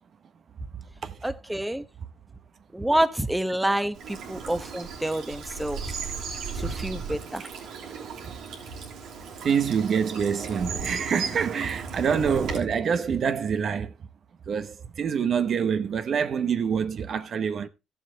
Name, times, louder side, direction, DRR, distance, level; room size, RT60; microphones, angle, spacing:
voice 1, 1.2-1.8 2.7-6.0 6.5-7.5, right 1 dB, 5° right, 1.0 m, -28 dB
Bird vocalization bird call bird song / Stream, 3.9-12.6, right 5 dB, 90° right, 2.9 m, -36 dB
voice 2, 9.4-13.9 14.5-17.7, right 7 dB, 55° right, 0.9 m, -26 dB
14.5 x 7.2 x 3.5 m
cardioid pair, 90°, 0 cm